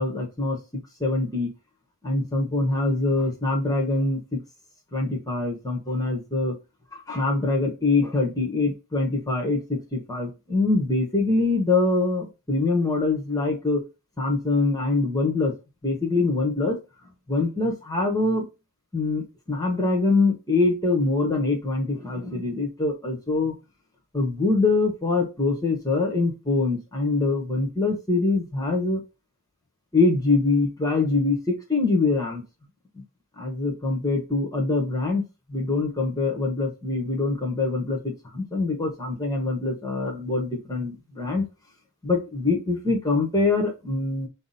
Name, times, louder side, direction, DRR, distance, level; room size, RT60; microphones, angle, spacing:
voice 1, 0.0-1.5 2.0-4.4 4.9-6.5 7.1-13.8 14.2-15.5 15.8-16.8 17.3-18.4 18.9-23.5 24.1-29.0 29.9-32.4 33.4-35.2 35.5-41.4 42.0-44.3, left 3 dB, 15° left, 1 dB, 1.1 m, -24 dB
5.8 x 2.1 x 4.1 m, 0.28 s
head